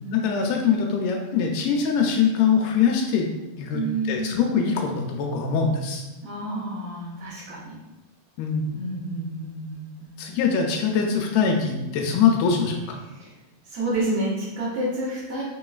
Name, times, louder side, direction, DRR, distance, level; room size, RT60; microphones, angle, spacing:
voice 1, 0.1-3.3 3.6-3.8 4.1-6.0 8.4-8.7 10.2-13.0, left 6 dB, 90° left, 1 dB, 2.1 m, -23 dB
voice 2, 3.7-4.5 6.2-7.8 8.7-10.1 13.0-13.3 13.6-15.4, right 1 dB, 65° right, -12 dB, 2.3 m, -30 dB
5.4 x 3.0 x 2.3 m, 1.0 s
omnidirectional pair, 3.6 m